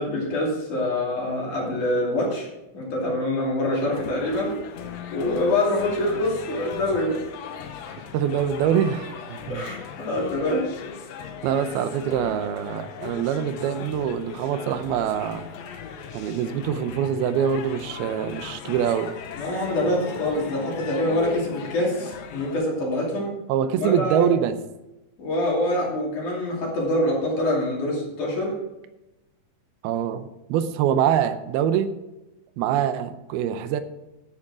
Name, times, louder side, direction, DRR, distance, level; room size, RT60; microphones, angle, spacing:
voice 1, 0.0-2.5 2.7-4.6 5.1-7.2 7.8-8.0 9.5-10.7 19.4-23.4 23.8-24.3 25.2-28.6, left 1 dB, 55° left, -3 dB, 4.0 m, -25 dB
sound 1, 3.7-22.6, left 6 dB, 75° left, 1.5 m, -38 dB
voice 2, 8.1-9.6 11.4-15.4 16.1-19.1 23.5-24.6 29.8-31.9 32.6-33.8, right 9 dB, 85° right, 11 dB, 2.7 m, -24 dB
10.5 x 8.6 x 4.8 m, 0.97 s
omnidirectional pair, 4.3 m